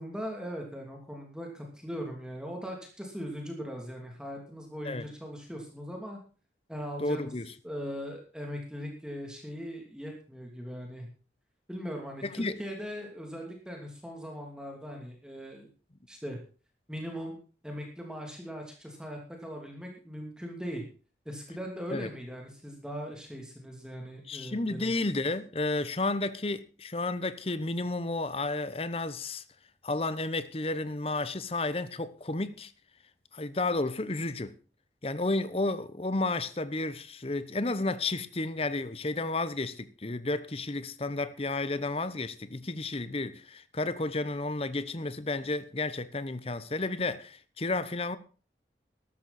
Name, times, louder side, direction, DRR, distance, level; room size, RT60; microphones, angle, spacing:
voice 1, 0.0-6.2 6.7-7.3 7.6-11.1 11.7-15.7 16.1-16.4 16.9-17.4 17.6-20.8 21.2-25.0, equal, 5° right, 2.9 m, -40 dB
voice 2, 7.0-7.5 12.2-12.6 21.9-22.1 24.3-29.4 29.8-32.7 33.3-34.6 35.0-48.2, left 2 dB, 35° left, 0.9 m, -32 dB
13.5 x 13.0 x 4.3 m
head